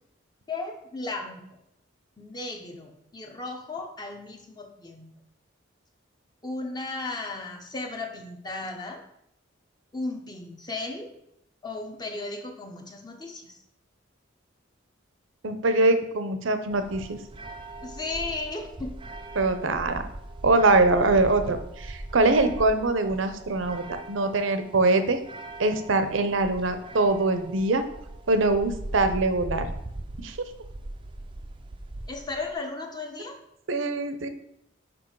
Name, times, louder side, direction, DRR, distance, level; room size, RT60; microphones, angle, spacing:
voice 1, 0.5-1.4 2.2-5.1 6.4-9.0 9.9-11.1 11.6-13.6 17.8-19.0 32.1-33.4, left 3 dB, 20° left, 3 dB, 0.8 m, -35 dB
voice 2, 15.4-17.2 19.4-20.0 20.4-25.2 25.6-27.8 28.3-29.7 30.2-30.4 33.7-34.3, right 2 dB, 75° right, 9 dB, 0.7 m, -23 dB
sound 1, 16.7-32.5, right 2 dB, 25° right, 0.4 m, -40 dB
6.2 x 4.9 x 4.7 m, 0.79 s
head